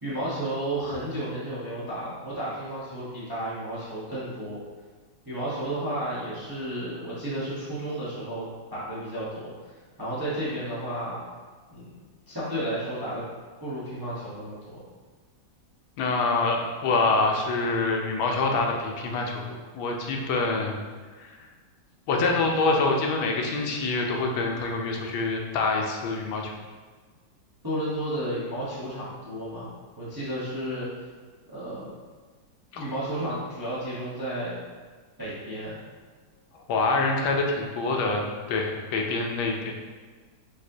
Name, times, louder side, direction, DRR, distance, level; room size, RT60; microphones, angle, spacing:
voice 1, 0.0-4.6 5.2-8.4 8.7-9.7 10.0-11.2 11.7-11.9 12.3-13.2 13.6-14.8 27.6-29.7 30.0-30.9 31.5-31.9 32.7-34.6 35.2-35.8, right 1 dB, 20° right, -9 dB, 0.5 m, -32 dB
voice 2, 16.0-20.8 21.2-21.4 22.1-26.5 32.7-32.8 36.5-39.7, left 3 dB, 85° left, 1 dB, 1.5 m, -26 dB
5.2 x 3.5 x 2.7 m, 1.5 s
omnidirectional pair, 2.2 m